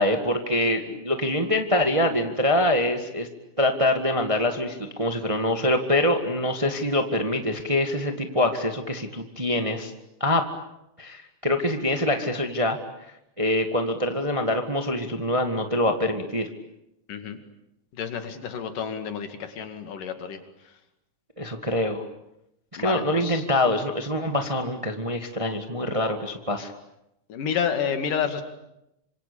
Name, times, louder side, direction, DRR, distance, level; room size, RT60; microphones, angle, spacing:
voice 1, 0.0-3.3 3.6-9.9 10.2-10.4 11.0-12.8 13.4-16.5 21.4-22.0 22.8-26.7, left 1 dB, 15° right, 6 dB, 1.2 m, -24 dB
voice 2, 17.9-20.4 22.8-23.4 27.3-28.4, left 7 dB, 85° left, 8 dB, 3.9 m, -29 dB
26.5 x 26.0 x 8.6 m, 0.85 s
omnidirectional pair, 3.7 m